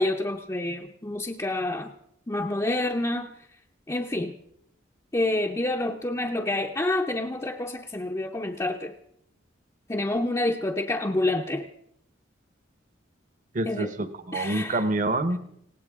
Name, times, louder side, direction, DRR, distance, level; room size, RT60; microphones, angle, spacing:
voice 1, 0.0-1.9 2.3-3.3 3.9-4.4 5.1-8.9 9.9-11.7 13.6-13.9 14.3-14.8, left 2 dB, 15° left, 1 dB, 0.6 m, -28 dB
voice 2, 13.5-15.4, right 2 dB, 40° right, 11 dB, 1.0 m, -27 dB
19.5 x 17.0 x 3.6 m, 0.72 s
head